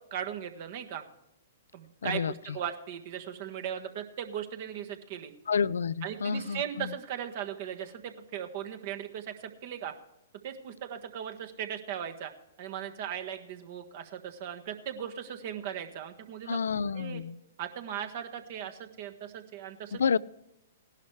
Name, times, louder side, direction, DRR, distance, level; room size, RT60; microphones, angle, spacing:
voice 1, 0.1-1.0 1.7-5.3 6.0-9.9 10.4-12.3 12.6-16.6 16.9-17.2 17.6-20.0, right 9 dB, 50° right, 6 dB, 1.5 m, -38 dB
voice 2, 2.0-2.6 5.5-6.9 16.5-17.4 19.9-20.2, left 6 dB, 75° left, 20 dB, 0.3 m, -30 dB
17.5 x 11.5 x 3.2 m, 0.84 s
hypercardioid pair, 120°, 0 cm